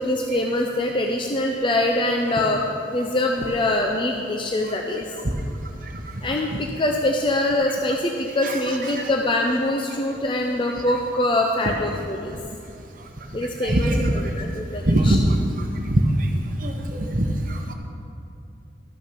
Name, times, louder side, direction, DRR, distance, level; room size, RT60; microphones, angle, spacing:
voice 1, 0.0-5.1 6.2-12.4 13.3-15.2, left 1 dB, 30° left, 1 dB, 0.5 m, -24 dB
voice 2, 8.4-9.1 13.6-14.1 14.9-15.2 15.9-16.0 16.6-17.7, right 1 dB, 50° right, 3 dB, 0.9 m, -22 dB
13.0 x 6.5 x 5.9 m, 2.8 s
head